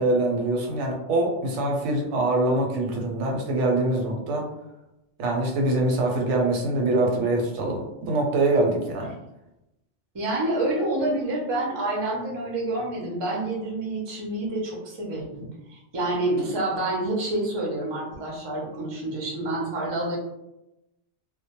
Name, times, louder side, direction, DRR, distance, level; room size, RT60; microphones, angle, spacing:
voice 1, 0.0-4.5 5.2-9.1, right 2 dB, 80° right, 0 dB, 0.9 m, -24 dB
voice 2, 10.1-20.2, right 2 dB, 35° right, -3 dB, 0.4 m, -28 dB
2.1 x 2.0 x 2.8 m, 0.91 s
omnidirectional pair, 1.2 m